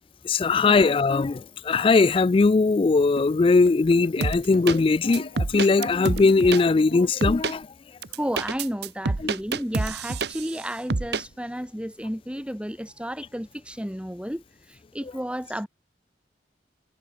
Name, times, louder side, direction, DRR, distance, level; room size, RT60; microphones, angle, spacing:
voice 1, 0.3-7.7, left 3 dB, 30° left, 0.3 m, -20 dB
sound 1, 3.2-7.1, left 1 dB, 55° left, 4.4 m, -39 dB
sound 2, 4.2-4.8 5.1-6.6 7.2-7.5 8.0-10.6 10.9-11.2, right 3 dB, 65° right, 0.9 m, -27 dB
voice 2, 8.2-15.7, equal, 5° right, 5.4 m, -32 dB
head